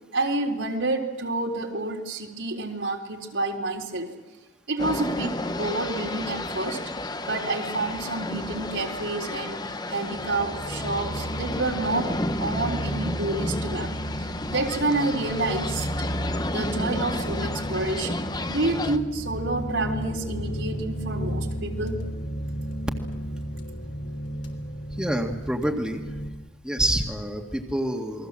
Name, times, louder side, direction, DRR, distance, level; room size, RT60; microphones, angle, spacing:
voice 1, 0.1-4.1 4.7-6.8 7.2-12.1 12.4-13.9 14.2-15.9 16.5-18.2 18.5-22.0, right 2 dB, 75° right, 2 dB, 3.9 m, -29 dB
sound 1, 4.8-19.0, left 2 dB, 20° left, 1.0 m, -32 dB
sound 2, 10.1-26.3, equal, 60° left, 3.5 m, -33 dB
voice 2, 25.0-26.0 26.6-28.3, right 1 dB, 5° right, 2 dB, 1.9 m, -27 dB
28.5 x 22.5 x 7.6 m, 1.2 s
head